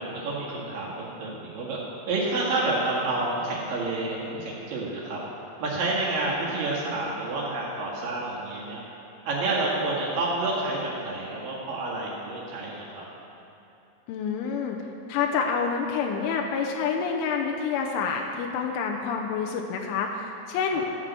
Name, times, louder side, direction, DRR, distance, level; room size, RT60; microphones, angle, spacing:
voice 1, 0.0-1.8 2.1-5.2 5.6-8.8 9.3-13.0 20.7-20.8, right 2 dB, 55° right, -5 dB, 3.1 m, -29 dB
voice 2, 14.1-14.8 15.1-20.8, left 6 dB, 85° left, 1 dB, 3.2 m, -28 dB
13.5 x 6.0 x 7.6 m, 2.8 s
omnidirectional pair, 5.4 m